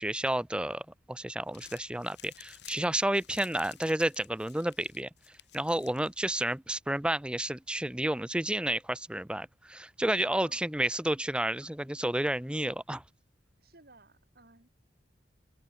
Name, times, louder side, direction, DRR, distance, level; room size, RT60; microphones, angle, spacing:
voice 1, 0.0-5.1 5.5-13.0, right 1 dB, 5° right, 0.6 m, -31 dB
Crumpling crinkling, 1.3-6.6, left 12 dB, 75° left, 2.3 m, -54 dB
voice 2, 10.4-10.7 13.6-14.7, right 2 dB, 60° right, 5.9 m, -58 dB
open air
head